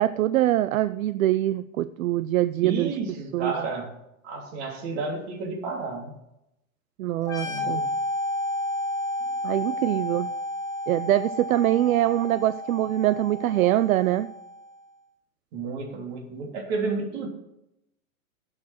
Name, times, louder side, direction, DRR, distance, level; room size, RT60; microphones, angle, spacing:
voice 1, 0.0-2.9 3.3-3.5 7.0-7.8 9.4-10.3 10.9-14.3, right 14 dB, 75° right, 14 dB, 0.6 m, -23 dB
voice 2, 2.6-3.9 4.2-6.1 7.4-7.9 9.3-9.4 15.5-17.3, right 4 dB, 50° right, 2 dB, 3.3 m, -31 dB
sound 1, 7.2-14.7, left 1 dB, 10° left, 1.4 m, -32 dB
11.5 x 7.4 x 6.5 m, 0.84 s
supercardioid pair, 150°, 42 cm